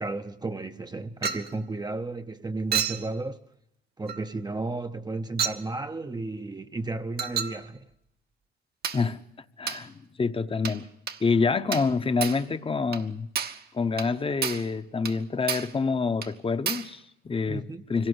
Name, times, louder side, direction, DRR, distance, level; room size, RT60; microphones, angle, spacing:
voice 1, 0.0-3.4 4.0-7.9 17.5-17.8, right 2 dB, 20° right, 0.8 m, -33 dB
Chink clink, 1.2-1.5 2.7-3.1 4.1-4.3 5.4-5.7 7.2-7.6 8.8-9.1 9.7-9.9 10.7-10.8 11.1-11.2 11.7-11.9 12.2-12.5 12.9-13.1 13.4-13.6 14.0-14.1 14.4-14.7 15.1-15.2 15.5-15.8 16.2-16.3 16.7-16.9, right 7 dB, 50° right, 1.2 m, -31 dB
voice 2, 9.6-10.9 11.2-13.3 13.7-17.6 17.9-18.1, left 4 dB, 25° left, 1.0 m, -27 dB
25.0 x 17.5 x 8.0 m
cardioid pair, 90°, 20 cm